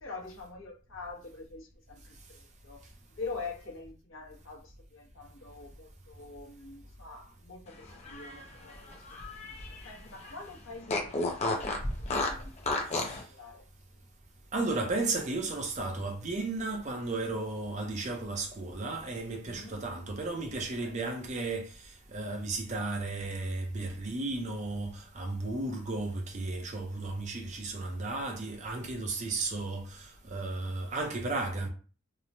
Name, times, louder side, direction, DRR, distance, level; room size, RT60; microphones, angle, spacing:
voice 1, 0.0-9.1 9.4-9.6 9.8-13.0 13.3-13.6 19.3-19.9 20.8-21.1, left 3 dB, 65° left, 0.9 m, -45 dB
Fart, 7.9-9.9 10.2-10.3 10.9-13.2, left 2 dB, 30° left, 0.5 m, -32 dB
voice 2, 12.9-13.2 14.5-31.7, right 2 dB, 35° right, 0.5 m, -34 dB
2.9 x 2.1 x 2.6 m
head